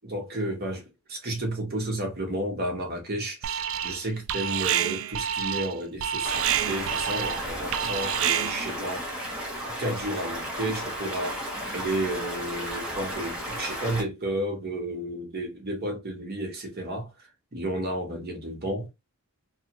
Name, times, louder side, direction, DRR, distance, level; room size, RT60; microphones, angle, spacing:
voice 1, 0.0-9.1 9.7-11.4 11.7-18.9, right 1 dB, 45° right, 0.9 m, -32 dB
Alarm, 3.4-4.0 4.3-8.7, right 9 dB, 65° right, 0.3 m, -28 dB
Stream, 6.2-14.0, equal, 5° right, 0.8 m, -34 dB
2.8 x 2.4 x 2.8 m
head